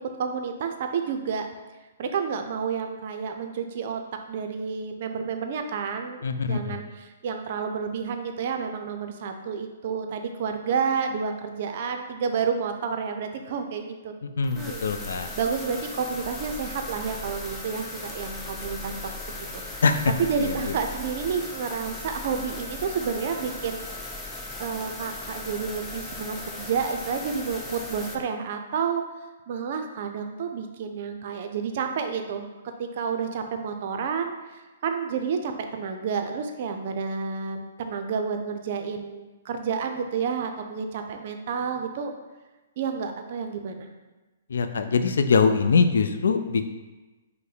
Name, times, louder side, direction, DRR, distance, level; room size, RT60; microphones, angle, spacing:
voice 1, 0.0-1.5 2.0-4.0 4.3-14.1 14.6-14.8 15.1-18.9 19.5-19.8 20.2-23.8 24.6-29.0 29.5-32.5 32.8-34.3 34.8-42.1 42.8-43.9, right 6 dB, 50° right, 5 dB, 0.5 m, -30 dB
voice 2, 6.2-6.8 14.2-15.3 19.8-19.9 20.4-20.7 44.5-46.6, left 5 dB, 70° left, 8 dB, 0.3 m, -23 dB
sound 1, 14.4-28.2, left 2 dB, 15° left, 0.5 m, -38 dB
5.3 x 2.1 x 4.0 m, 1.2 s
hypercardioid pair, 125°, 0 cm